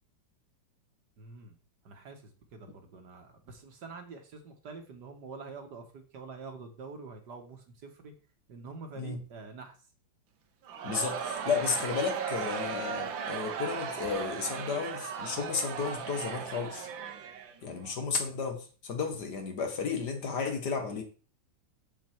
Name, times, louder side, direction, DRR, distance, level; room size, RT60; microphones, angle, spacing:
voice 1, 1.2-1.6 1.8-8.1 8.5-9.7, right 4 dB, 60° right, 1.8 m, -46 dB
Crowd, 10.7-17.9, right 7 dB, 80° right, 1.7 m, -37 dB
voice 2, 10.8-16.9 17.6-21.0, left 5 dB, 60° left, 1.8 m, -33 dB
7.3 x 5.3 x 4.5 m
omnidirectional pair, 2.1 m